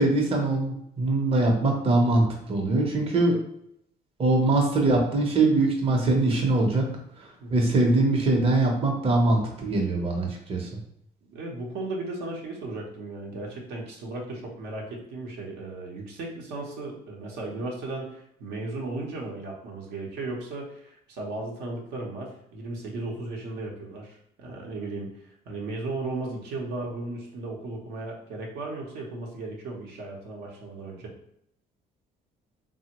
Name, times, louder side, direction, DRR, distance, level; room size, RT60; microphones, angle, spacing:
voice 1, 0.0-3.4 4.2-6.8 7.5-10.7, right 2 dB, 35° right, 0 dB, 0.7 m, -22 dB
voice 2, 11.2-25.2 25.5-31.1, right 2 dB, 80° right, -1 dB, 0.7 m, -36 dB
3.3 x 2.0 x 2.9 m, 0.73 s
cardioid pair, 110°, 17 cm